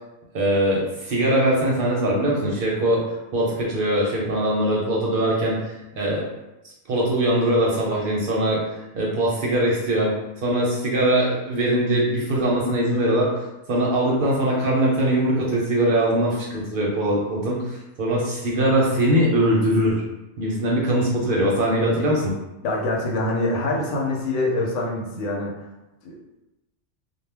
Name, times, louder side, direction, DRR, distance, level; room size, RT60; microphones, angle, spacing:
voice 1, 0.3-3.0 3.3-5.6 6.0-6.2 6.6-10.1 10.4-20.0 20.4-22.3, right 1 dB, 60° right, -4 dB, 0.6 m, -21 dB
voice 2, 22.6-25.5 26.0-26.2, left 2 dB, 85° left, -1 dB, 1.0 m, -25 dB
2.2 x 2.0 x 3.3 m, 0.98 s
omnidirectional pair, 1.2 m